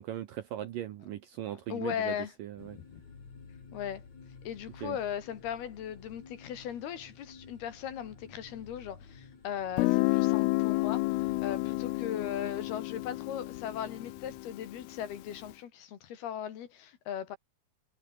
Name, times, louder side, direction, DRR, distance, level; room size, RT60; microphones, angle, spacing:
voice 1, 0.0-2.8 4.8-5.0, right 12 dB, 70° right, 2.2 m, -39 dB
voice 2, 1.7-2.3 2.7-3.0 3.7-4.0 4.5-11.0 11.4-17.4, left 9 dB, 65° left, 4.0 m, -38 dB
sound 1, 2.6-14.4, left 5 dB, 40° left, 5.5 m, -52 dB
Guitar, 9.8-15.3, left 23 dB, 85° left, 2.2 m, -30 dB
omnidirectional pair, 5.1 m